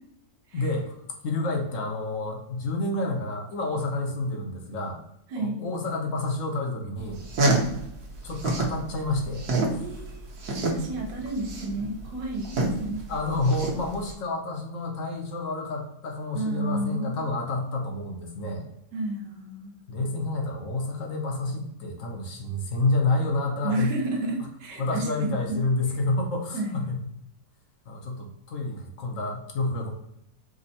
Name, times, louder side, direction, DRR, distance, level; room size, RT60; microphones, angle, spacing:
voice 1, 0.5-1.0 1.2-5.0 5.4-7.2 8.2-9.5 13.1-18.7 19.9-23.9 24.8-27.1 27.9-29.9, left 2 dB, 60° left, 2 dB, 1.0 m, -29 dB
sound 1, 7.0-8.8 9.1-14.1, right 2 dB, 65° right, 1.4 m, -27 dB
voice 2, 9.8-10.3 10.6-13.1 16.3-17.2 18.9-19.7 23.6-25.4 26.5-26.8, right 2 dB, 85° right, 1 dB, 1.4 m, -31 dB
5.2 x 2.1 x 4.1 m, 0.80 s
omnidirectional pair, 1.9 m